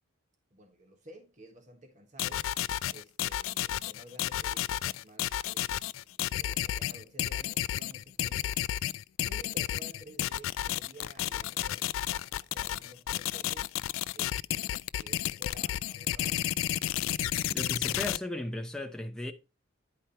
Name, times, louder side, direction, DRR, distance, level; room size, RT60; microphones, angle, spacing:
voice 1, 0.5-2.5 2.9-8.6 9.2-13.7 14.1-16.4, equal, 40° right, 1.4 m, -53 dB
sound 1, 2.2-18.2, left 12 dB, 90° left, 0.3 m, -32 dB
voice 2, 17.5-19.3, left 1 dB, 5° left, 0.8 m, -36 dB
10.5 x 4.6 x 4.2 m
head